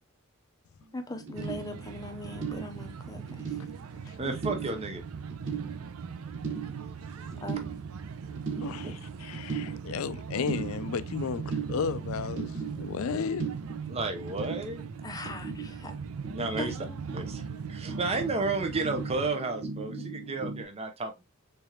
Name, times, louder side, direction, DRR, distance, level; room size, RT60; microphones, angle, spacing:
sound 1, 0.8-0.9 1.1-20.6, right 5 dB, 65° right, 0.8 m, -39 dB
voice 1, 0.9-3.5 4.2-4.3 7.2-7.6 15.0-15.9 16.6-17.0 20.0-20.1, left 1 dB, 20° left, 0.6 m, -40 dB
sound 2, 1.3-19.3, right 5 dB, 90° right, 0.4 m, -41 dB
voice 2, 4.2-5.0 8.8-9.0 13.9-14.9 15.8-16.0 16.3-16.7 17.1-17.4 17.7-21.2, right 3 dB, 30° right, 0.6 m, -32 dB
voice 3, 8.6-13.5, left 6 dB, 75° left, 0.4 m, -34 dB
3.7 x 3.3 x 2.8 m
head